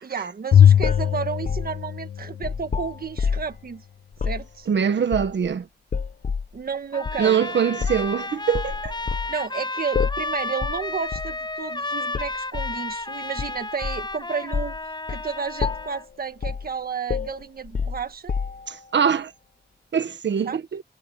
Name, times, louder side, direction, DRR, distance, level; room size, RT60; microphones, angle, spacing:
voice 1, 0.0-3.8 4.2-4.7 6.5-7.4 9.3-14.8 15.1-18.3 20.4-20.6, right 6 dB, 55° right, 1.5 m, -32 dB
Bowed string instrument, 0.5-2.9, left 9 dB, 75° left, 0.7 m, -19 dB
sound 1, 0.8-3.6 4.1-4.5 5.1-5.5 5.9-6.5 7.0-7.2 7.8-8.1 8.5-9.3 9.9-10.3 10.6-10.8 11.1-11.4 12.1-12.8 13.4-14.1 14.5-14.8 15.1-15.3 15.6-16.0 16.4-16.7 17.1-18.8, left 5 dB, 45° left, 0.8 m, -28 dB
voice 2, 4.7-5.7 7.2-9.0 18.7-19.3 19.9-20.8, right 7 dB, 80° right, 1.5 m, -23 dB
Trumpet, 6.9-16.0, left 2 dB, 25° left, 6.2 m, -32 dB
wide cardioid pair, 105°, 18 cm